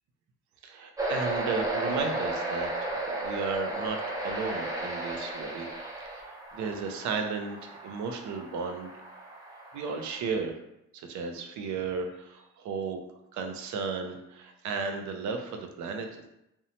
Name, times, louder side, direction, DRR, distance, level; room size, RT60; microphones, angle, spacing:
voice 1, 0.6-5.7 6.1-8.9 9.7-10.6 10.9-13.0 13.3-16.3, right 5 dB, 75° right, 5 dB, 0.5 m, -34 dB
sound 1, 1.0-10.2, right 2 dB, 10° right, 0.5 m, -34 dB
2.6 x 2.1 x 2.7 m, 0.84 s
cardioid pair, 90°, 30 cm